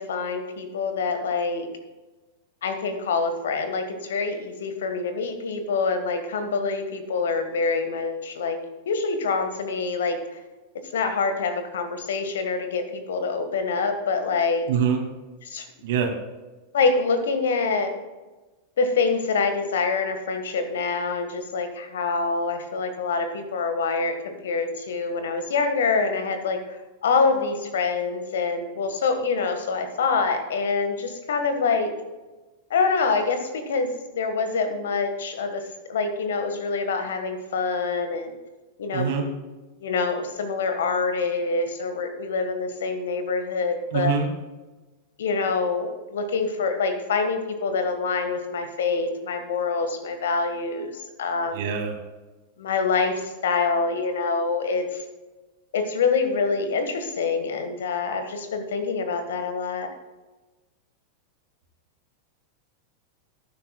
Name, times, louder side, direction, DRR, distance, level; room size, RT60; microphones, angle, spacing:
voice 1, 0.0-1.7 2.6-8.6 8.8-10.2 10.9-14.6 15.4-15.7 16.7-17.9 18.8-26.6 27.0-31.9 32.7-35.6 35.9-38.3 38.8-39.1 39.8-44.1 45.2-51.6 52.6-55.0 55.7-59.9, left 4 dB, 60° left, 8 dB, 1.7 m, -25 dB
voice 2, 14.7-15.0 15.8-16.1 38.9-39.2 43.9-44.3 51.5-52.0, right 7 dB, 55° right, 2 dB, 2.6 m, -24 dB
18.5 x 10.0 x 2.4 m, 1.2 s
figure-of-eight pair, 90°, 0 cm